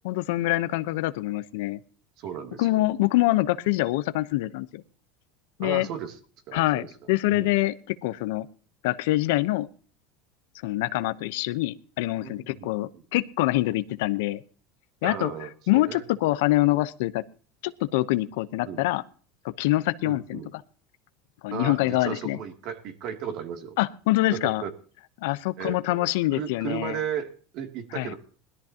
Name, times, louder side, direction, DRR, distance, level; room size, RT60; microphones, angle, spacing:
voice 1, 0.0-1.8 2.6-4.8 5.6-5.9 6.5-8.5 8.8-9.7 10.6-14.4 15.0-15.3 15.7-17.2 17.6-19.0 19.4-20.4 21.4-22.4 23.8-24.6 25.2-27.0 27.9-28.1, left 18 dB, 80° left, 13 dB, 0.9 m, -25 dB
voice 2, 2.2-2.7 5.6-6.2 6.5-6.9 7.3-7.5 12.2-12.7 12.9-13.0 15.0-16.1 18.6-18.8 20.0-20.5 21.5-23.8 24.3-24.7 25.6-28.2, right 8 dB, 55° right, 5 dB, 2.7 m, -35 dB
20.5 x 13.0 x 2.9 m, 0.40 s
supercardioid pair, 130°, 0 cm